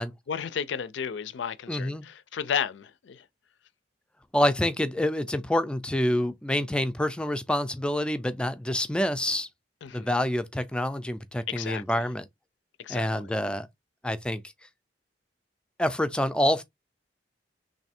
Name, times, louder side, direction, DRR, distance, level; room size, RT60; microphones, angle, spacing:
voice 1, 0.3-3.3 9.8-10.1 11.5-12.1 12.8-13.3, left 8 dB, 80° left, 0.4 m, -33 dB
voice 2, 1.7-2.1 4.3-9.5 9.9-12.2 12.9-13.7 14.0-14.4 15.8-16.6, left 1 dB, 5° left, 0.3 m, -27 dB
3.2 x 2.6 x 4.2 m
head